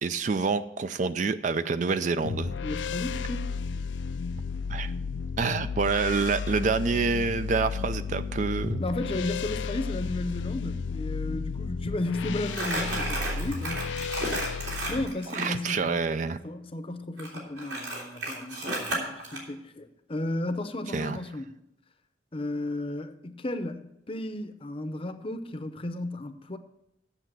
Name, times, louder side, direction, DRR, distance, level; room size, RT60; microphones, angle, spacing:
voice 1, 0.0-2.6 4.7-4.9 5.4-8.8 15.4-16.4 20.9-21.2, right 4 dB, 45° right, 0.4 m, -27 dB
sound 1, 2.2-15.1, left 5 dB, 85° left, 0.5 m, -33 dB
voice 2, 2.6-3.6 8.8-13.9 14.9-16.0 16.4-21.5 22.3-26.6, left 2 dB, 30° left, 0.7 m, -34 dB
Crumpling crinkling, 12.5-15.5 17.2-19.4, right 2 dB, 70° right, 3.1 m, -33 dB
8.0 x 7.1 x 7.6 m
head